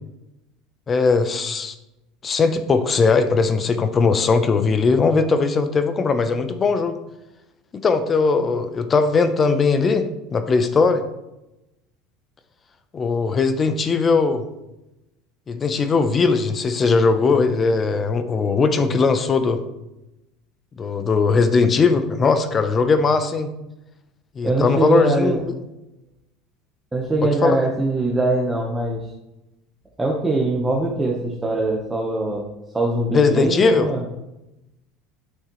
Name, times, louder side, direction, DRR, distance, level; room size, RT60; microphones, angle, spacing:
voice 1, 0.9-1.7 2.2-7.0 7.8-11.0 12.9-14.4 15.5-19.6 20.8-23.5 24.4-25.4 27.2-27.6 33.1-33.9, left 4 dB, 30° left, 10 dB, 0.7 m, -19 dB
voice 2, 24.4-25.4 26.9-29.0 30.0-32.5 32.7-34.0, right 2 dB, 10° right, -2 dB, 1.1 m, -22 dB
8.9 x 6.5 x 3.1 m, 0.94 s
supercardioid pair, 110°, 0 cm